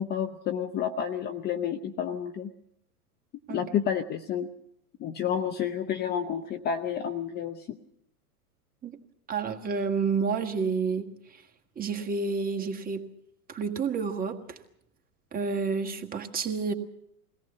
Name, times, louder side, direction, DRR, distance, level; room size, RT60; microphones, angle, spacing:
voice 1, 0.0-2.5 3.5-4.5 5.0-7.8, left 8 dB, 20° left, 8 dB, 0.7 m, -30 dB
voice 2, 9.3-11.1 11.8-13.1 13.5-14.4 15.3-16.7, right 5 dB, 20° right, 4 dB, 1.7 m, -29 dB
22.5 x 17.5 x 6.8 m, 0.75 s
hypercardioid pair, 110°, 47 cm